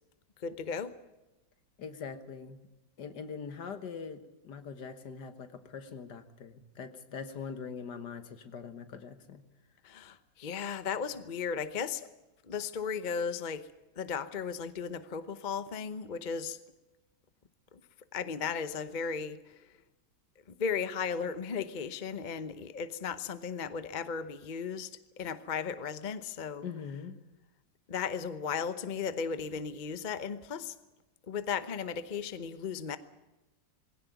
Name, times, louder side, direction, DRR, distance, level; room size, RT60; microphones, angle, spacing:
voice 1, 0.4-1.0 9.8-12.1 12.5-13.7 14.0-16.6 17.7-17.8 18.1-19.6 20.5-24.9 25.2-26.7 27.9-30.7 31.3-33.0, left 6 dB, 40° left, 12 dB, 0.7 m, -35 dB
voice 2, 1.8-2.6 3.0-4.2 4.4-9.4 26.6-27.2, left 6 dB, 60° left, 10 dB, 2.0 m, -42 dB
20.5 x 17.0 x 9.3 m, 1.0 s
omnidirectional pair, 2.0 m